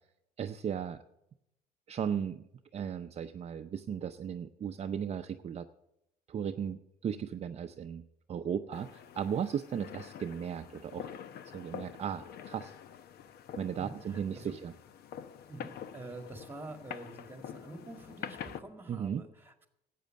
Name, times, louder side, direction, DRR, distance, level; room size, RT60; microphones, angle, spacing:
voice 1, 0.4-1.0 1.9-2.4 2.7-5.7 6.3-8.0 8.3-11.1 11.5-12.7 13.6-14.7 18.9-19.2, right 8 dB, 40° right, 6 dB, 0.6 m, -36 dB
sound 1, 8.7-18.6, left 8 dB, 70° left, 0.9 m, -46 dB
voice 2, 13.8-14.6 15.5-19.7, right 2 dB, 10° right, 6 dB, 1.9 m, -47 dB
12.5 x 8.4 x 7.6 m, 0.82 s
cardioid pair, 110°, 17 cm